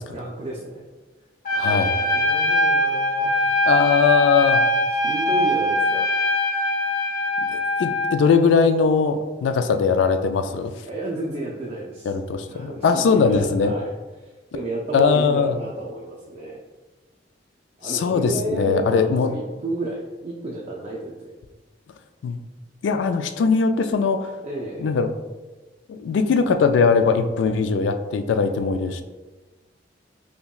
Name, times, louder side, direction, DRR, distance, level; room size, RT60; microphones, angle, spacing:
voice 1, 0.1-0.8 1.5-3.7 5.0-6.2 10.9-12.1 12.5-13.9 14.2-16.6 17.8-21.3 24.4-24.9, right 1 dB, 35° right, -3 dB, 0.4 m, -31 dB
Trumpet, 1.4-8.2, left 1 dB, 50° left, 0.8 m, -22 dB
voice 2, 1.6-1.9 3.7-4.6 7.5-10.7 12.1-13.7 14.9-15.6 17.8-19.3 22.2-22.4 22.8-24.3 24.8-25.1 25.9-29.0, left 5 dB, 80° left, 8 dB, 0.3 m, -20 dB
5.6 x 2.2 x 2.3 m, 1.2 s
head